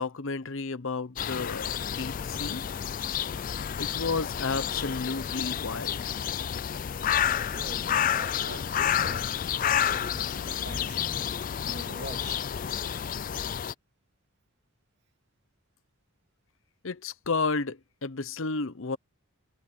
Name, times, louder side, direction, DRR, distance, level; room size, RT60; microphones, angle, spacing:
voice 1, 0.0-2.6 3.8-6.0 16.8-19.0, left 4 dB, 60° left, 0.9 m, -32 dB
sound 1, 1.2-13.7, left 9 dB, 40° left, 0.3 m, -30 dB
voice 2, 7.5-11.4 11.6-12.4, right 2 dB, 50° right, 2.5 m, -44 dB
head